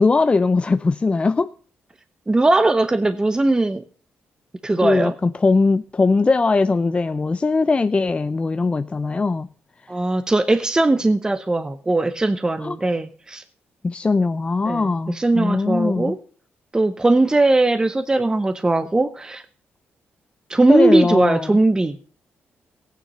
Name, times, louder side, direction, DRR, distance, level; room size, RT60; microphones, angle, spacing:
voice 1, 0.0-1.5 4.8-9.5 12.6-12.8 13.8-16.1 20.7-21.5, left 3 dB, 25° left, 12 dB, 0.5 m, -20 dB
voice 2, 2.3-3.8 4.6-5.1 9.9-13.4 14.7-16.2 16.7-19.4 20.5-22.0, right 2 dB, 15° right, 10 dB, 0.8 m, -19 dB
15.0 x 9.3 x 5.4 m, 0.41 s
cardioid pair, 90°, 4 cm